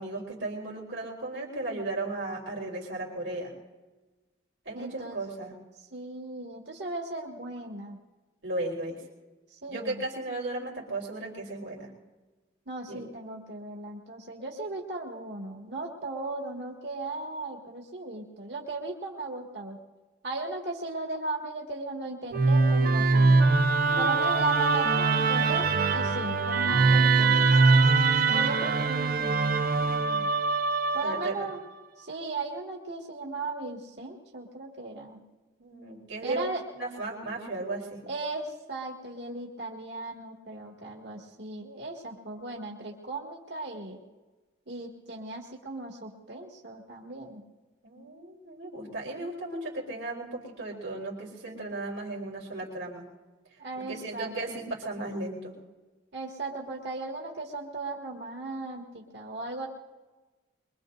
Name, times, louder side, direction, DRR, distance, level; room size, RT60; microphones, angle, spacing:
voice 1, 0.0-3.5 4.7-5.6 8.4-9.0 9.7-11.9 12.9-13.0 23.9-24.2 31.0-31.5 35.6-38.0 47.8-53.1 53.7-55.5, right 2 dB, 80° right, -2 dB, 3.7 m, -35 dB
voice 2, 4.7-5.2 5.9-8.0 9.5-10.0 12.7-19.8 20.2-23.4 24.0-27.5 28.3-30.3 30.9-31.6 32.0-35.2 36.2-36.6 38.1-44.0 44.7-47.4 53.6-54.7 56.1-59.7, right 3 dB, 65° right, -1 dB, 1.9 m, -37 dB
Musical instrument, 22.3-31.5, right 3 dB, 50° right, 0.7 m, -23 dB
23.5 x 23.5 x 2.6 m, 1.2 s
head